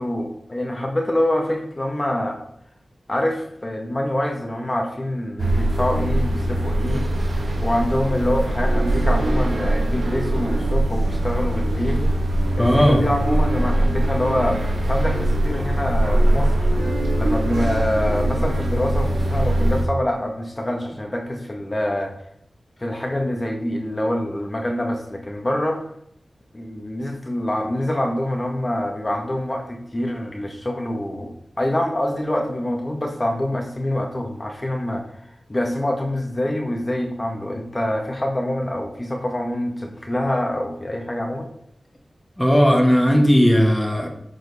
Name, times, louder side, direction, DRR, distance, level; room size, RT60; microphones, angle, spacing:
voice 1, 0.0-2.4 3.1-7.1 7.6-12.1 12.6-14.6 14.9-16.7 17.1-22.1 22.8-25.8 26.5-31.3 31.6-35.0 35.5-41.5, left 1 dB, 30° left, 2 dB, 1.5 m, -25 dB
sound 1, 5.4-19.9, right 1 dB, 90° right, 1.6 m, -21 dB
voice 2, 12.6-13.0 42.4-44.1, equal, 5° left, 1 dB, 1.4 m, -16 dB
9.5 x 5.0 x 4.1 m, 0.72 s
cardioid pair, 60°, 0 cm